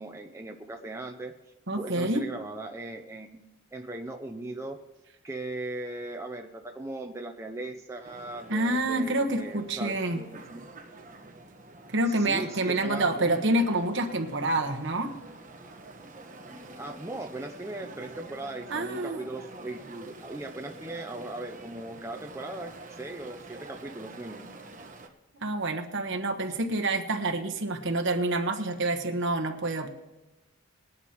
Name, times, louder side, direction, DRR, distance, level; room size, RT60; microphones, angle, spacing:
voice 1, 0.0-1.3 1.8-3.4 3.7-4.8 5.2-10.7 12.1-13.4 16.8-24.5, right 2 dB, 10° right, 3 dB, 0.5 m, -38 dB
voice 2, 1.7-2.3 8.5-10.2 11.9-15.1 18.7-19.2 25.4-29.9, right 2 dB, 55° right, 4 dB, 1.2 m, -27 dB
sound 1, 8.0-25.1, right 2 dB, 35° right, 1.3 m, -47 dB
20.5 x 11.0 x 3.0 m, 1.0 s
head